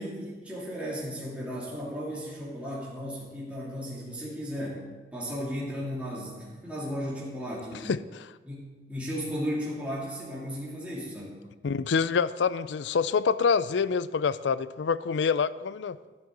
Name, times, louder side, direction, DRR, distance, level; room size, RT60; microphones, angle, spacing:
voice 1, 0.0-4.8 5.1-7.9 8.4-11.4, equal, 10° right, -7 dB, 2.8 m, -35 dB
voice 2, 7.8-8.3 11.6-16.0, left 5 dB, 85° left, 17 dB, 0.4 m, -26 dB
12.0 x 12.0 x 4.0 m, 1.3 s
head